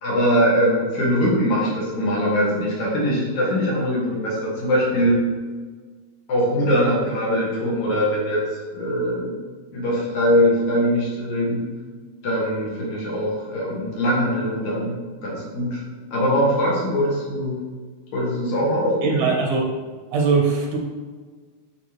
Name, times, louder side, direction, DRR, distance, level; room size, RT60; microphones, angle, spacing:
voice 1, 0.0-5.2 6.3-8.4 8.7-9.4 9.7-11.6 12.2-15.0 15.2-15.8 16.1-17.6 18.1-19.3, equal, 75° left, -5 dB, 2.9 m, -22 dB
voice 2, 19.0-19.7 20.1-20.8, right 4 dB, 85° right, -1 dB, 2.6 m, -20 dB
9.3 x 3.4 x 3.0 m, 1.4 s
omnidirectional pair, 3.4 m